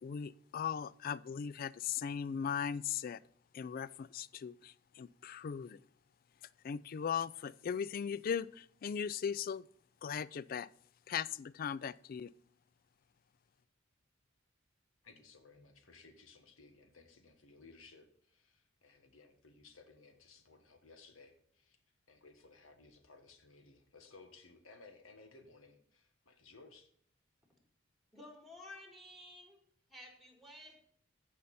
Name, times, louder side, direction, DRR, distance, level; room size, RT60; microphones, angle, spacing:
voice 1, 0.0-3.2 3.5-5.8 6.6-9.7 10.0-10.7 11.1-12.3, left 7 dB, 45° left, 0.3 m, -38 dB
voice 2, 15.0-21.8 22.1-26.9, left 3 dB, 90° left, 1.5 m, -59 dB
voice 3, 28.1-29.6 29.9-30.8, left 1 dB, ahead, 1.8 m, -53 dB
15.0 x 5.5 x 4.2 m
head